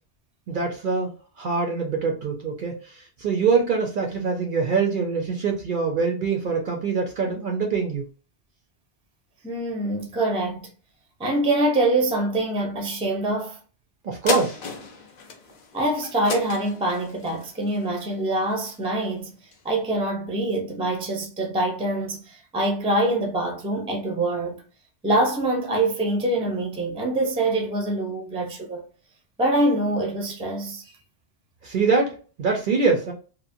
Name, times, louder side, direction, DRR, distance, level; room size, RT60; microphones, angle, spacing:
voice 1, 0.5-1.1 1.4-8.1 14.0-14.6 31.6-33.1, right 4 dB, 55° right, 0.6 m, -24 dB
voice 2, 9.4-10.7 11.2-13.6 15.7-19.3 19.6-24.6 25.0-28.8 29.4-30.8, right 1 dB, 10° right, 0.4 m, -24 dB
sound 1, 14.3-19.0 19.5-19.6, left 4 dB, 55° left, 0.5 m, -34 dB
2.9 x 2.1 x 2.6 m
omnidirectional pair, 1.2 m